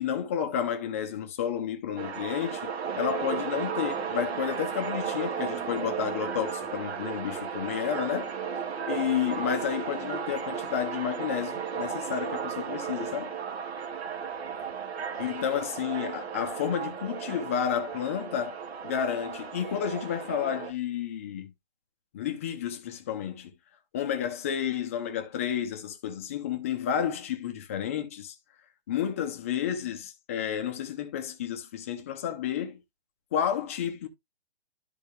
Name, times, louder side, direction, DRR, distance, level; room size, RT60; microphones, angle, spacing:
voice 1, 0.0-2.7 3.0-8.3 8.8-13.3 15.2-18.6 18.8-21.5 22.1-23.5 23.9-28.4 28.9-32.8 33.3-34.1, left 9 dB, 15° left, 0.6 m, -31 dB
sound 1, 2.0-20.7, right 7 dB, 75° right, 2.1 m, -34 dB
12.5 x 4.2 x 3.4 m
hypercardioid pair, 165°, 32 cm